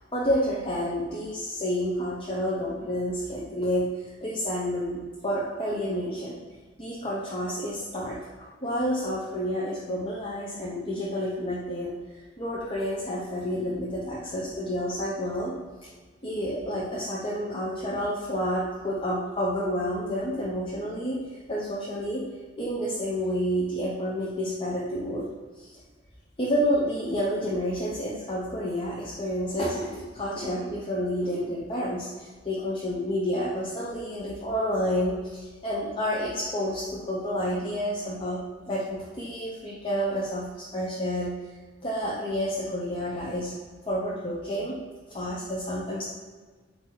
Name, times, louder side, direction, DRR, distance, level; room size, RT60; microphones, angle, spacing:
voice 1, 0.1-6.4 6.8-15.5 15.8-15.9 16.2-21.2 21.5-22.2 22.6-25.3 25.6-25.7 26.4-40.5 40.7-41.3 41.8-43.5 43.9-44.8 45.1-46.1, equal, 30° left, -6 dB, 0.9 m, -29 dB
8.4 x 2.9 x 3.9 m, 1.4 s
head